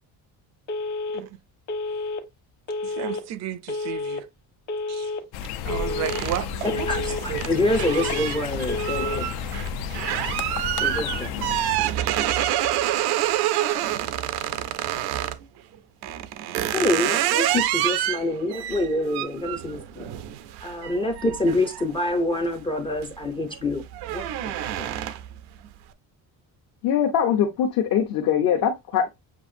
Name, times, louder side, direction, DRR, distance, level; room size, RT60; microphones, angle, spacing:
Telephone, 0.7-1.2 1.7-2.2 2.7-3.2 3.7-4.2 4.7-5.2 5.7-6.2 6.7-7.2 7.7-8.2 8.7-9.2, left 3 dB, 50° left, 1.2 m, -30 dB
voice 1, 2.8-4.3 4.9-5.1 5.6-7.7 16.6-16.9, right 11 dB, 45° right, 0.4 m, -33 dB
sound 1, 5.3-11.8, left 8 dB, 80° left, 0.6 m, -32 dB
sound 2, 6.0-15.4 16.0-22.5 22.9-23.2 23.6-25.4, right 12 dB, 90° right, 0.6 m, -27 dB
voice 2, 6.6-9.4 10.8-11.4 16.7-20.1 20.6-23.8 24.1-25.0, left 1 dB, 15° left, 0.4 m, -26 dB
voice 3, 26.8-29.1, left 8 dB, 65° left, 1.0 m, -22 dB
7.2 x 2.5 x 2.6 m
cardioid pair, 170°, 37 cm